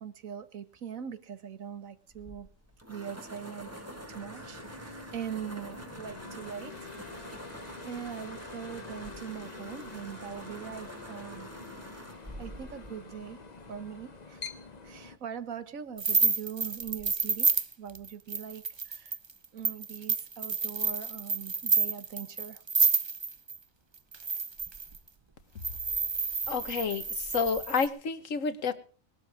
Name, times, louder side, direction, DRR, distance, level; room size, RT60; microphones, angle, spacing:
voice 1, 0.0-2.5 2.9-7.4 7.8-11.5 12.4-13.4 13.7-14.4 14.8-17.5 17.8-19.2 19.5-22.6, right 8 dB, 70° right, 12 dB, 1.6 m, -42 dB
sound 1, 2.1-13.9, right 1 dB, 10° right, 1.7 m, -47 dB
sound 2, 3.6-15.2, left 4 dB, 35° left, 1.0 m, -47 dB
sound 3, 16.0-23.6 24.1-25.0 25.6-27.9, right 4 dB, 30° right, 0.5 m, -29 dB
voice 2, 26.5-28.7, left 5 dB, 70° left, 12 dB, 1.6 m, -30 dB
20.0 x 12.0 x 4.8 m, 0.39 s
omnidirectional pair, 1.5 m